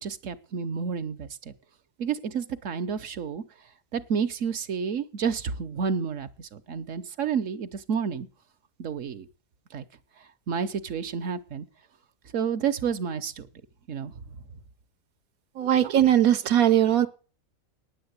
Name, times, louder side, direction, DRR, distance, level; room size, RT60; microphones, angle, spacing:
voice 1, 0.0-1.5 2.0-3.4 3.9-8.3 8.8-9.3 9.7-9.8 10.5-11.7 12.3-13.5 13.9-14.1, right 6 dB, 65° right, 9 dB, 1.2 m, -30 dB
voice 2, 15.6-17.1, right 11 dB, 85° right, 8 dB, 1.2 m, -20 dB
9.5 x 8.5 x 8.1 m, 0.37 s
omnidirectional pair, 1.5 m